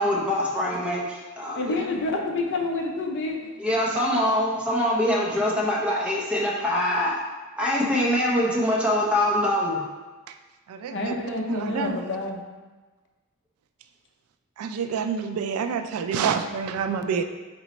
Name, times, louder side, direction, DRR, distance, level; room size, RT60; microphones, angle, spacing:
voice 1, 0.0-1.8 3.6-7.2 7.6-9.8, left 1 dB, 5° right, -4 dB, 0.7 m, -24 dB
voice 2, 1.6-3.4 10.9-12.4, left 2 dB, 55° left, 1 dB, 0.6 m, -28 dB
voice 3, 10.7-11.2 11.5-12.0 14.6-17.2, right 6 dB, 80° right, 12 dB, 0.3 m, -27 dB
3.9 x 3.1 x 4.1 m, 1.3 s
head